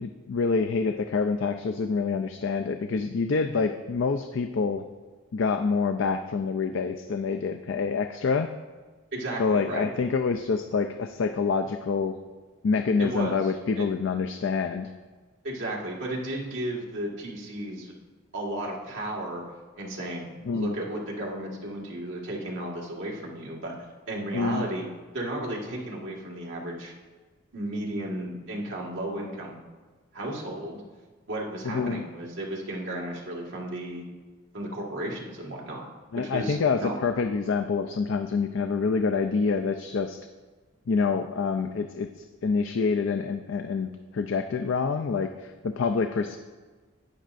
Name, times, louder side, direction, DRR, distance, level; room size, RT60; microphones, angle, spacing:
voice 1, 0.0-4.8 5.3-8.5 9.4-12.2 12.6-14.9 20.4-20.7 24.3-24.6 31.6-32.0 36.1-40.3 40.9-42.1 42.4-46.4, left 4 dB, 60° left, 7 dB, 0.4 m, -27 dB
voice 2, 9.1-9.9 13.0-13.4 13.8-13.9 15.4-17.9 18.3-19.4 19.8-20.3 20.5-23.7 24.1-24.9 25.1-26.9 27.5-29.6 30.1-30.8 31.3-34.0 34.5-35.8 36.1-37.0, right 1 dB, 55° right, -3 dB, 1.8 m, -34 dB
11.5 x 9.0 x 2.5 m, 1.4 s
head